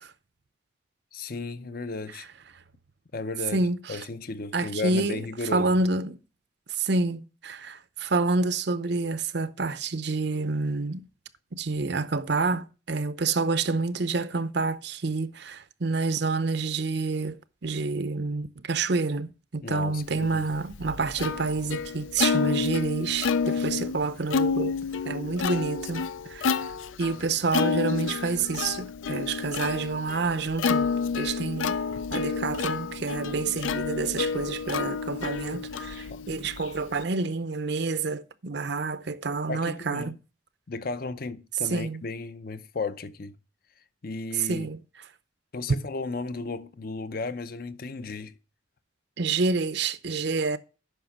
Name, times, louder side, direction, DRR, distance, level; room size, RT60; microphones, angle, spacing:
voice 1, 1.1-2.3 3.1-5.9 19.6-20.5 36.1-36.2 39.5-40.1 40.7-43.3 44.0-44.7 45.5-48.3, left 3 dB, 50° left, 0.6 m, -34 dB
voice 2, 3.5-4.0 4.5-5.2 5.5-6.2 6.7-11.1 11.5-24.8 25.1-26.0 26.3-26.6 27.0-30.9 31.1-31.8 32.1-40.2 41.7-42.0 44.5-44.8 49.2-50.6, right 3 dB, 60° right, 0.7 m, -28 dB
Plucked string instrument, 20.3-37.0, left 5 dB, 90° left, 0.5 m, -30 dB
9.1 x 5.8 x 5.8 m
head